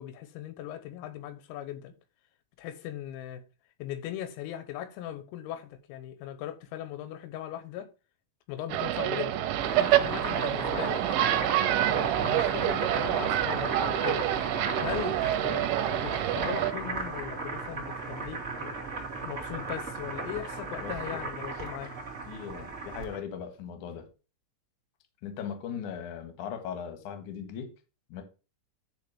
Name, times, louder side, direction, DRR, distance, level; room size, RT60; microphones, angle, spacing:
voice 1, 0.0-1.9 2.6-3.4 3.8-7.9 8.5-9.5 9.8-11.1 11.9-14.3 14.8-18.8 19.2-22.0, left 12 dB, 90° left, 3.8 m, -39 dB
sound 1, 8.7-16.7, right 13 dB, 80° right, 3.3 m, -27 dB
Boiling, 9.4-23.2, right 3 dB, 30° right, 1.2 m, -36 dB
voice 2, 20.8-21.2 22.2-24.1 25.2-27.7 28.1-28.2, left 8 dB, 70° left, 1.9 m, -38 dB
10.0 x 3.4 x 7.0 m
omnidirectional pair, 6.0 m